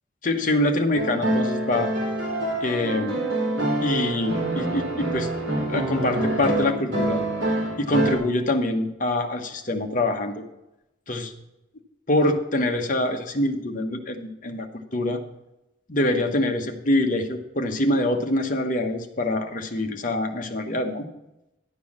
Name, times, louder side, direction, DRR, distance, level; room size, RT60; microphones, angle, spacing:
voice 1, 0.2-1.9 2.6-3.2 3.8-5.3 5.7-7.2 7.8-10.4 11.1-11.3 12.1-15.2 15.9-21.1, left 1 dB, 40° left, 5 dB, 1.0 m, -25 dB
sound 1, 0.9-8.2, right 1 dB, 70° right, 3.2 m, -26 dB
10.5 x 4.7 x 7.2 m, 0.91 s
head